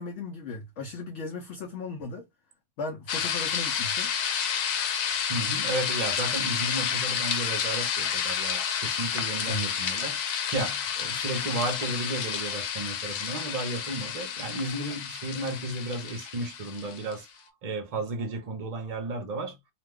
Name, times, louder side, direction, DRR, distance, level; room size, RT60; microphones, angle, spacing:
voice 1, 0.0-2.2 2.8-4.1 9.5-9.8, left 3 dB, 60° left, 0.8 m, -36 dB
sound 1, 3.1-17.1, left 7 dB, 85° left, 1.2 m, -30 dB
voice 2, 5.3-17.3 17.6-19.5, right 2 dB, 35° right, 0.6 m, -33 dB
2.7 x 2.2 x 3.4 m
omnidirectional pair, 1.6 m